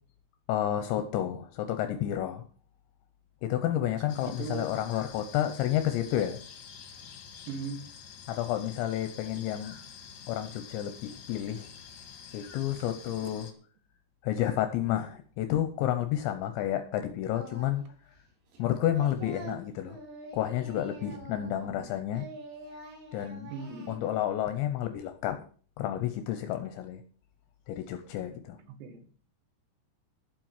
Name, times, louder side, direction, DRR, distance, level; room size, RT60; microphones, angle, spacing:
voice 1, 0.5-2.4 3.4-6.4 8.3-9.8 10.3-11.7 12.3-13.5 14.2-17.8 18.6-20.0 20.3-22.3 23.1-23.5 23.9-25.4 25.8-27.0 27.7-28.6, left 12 dB, 80° left, 8 dB, 3.0 m, -30 dB
sound 1, 4.1-13.5, left 7 dB, 55° left, 3.0 m, -48 dB
voice 2, 4.4-4.7 7.5-7.8 13.2-13.3 21.6-22.0 23.5-24.0 28.7-29.0, right 5 dB, 70° right, 8 dB, 3.8 m, -39 dB
Singing, 17.3-17.9 18.2-21.8 22.1-24.1, right 3 dB, 85° right, 6.2 m, -46 dB
11.5 x 7.6 x 7.4 m, 0.43 s
omnidirectional pair, 5.5 m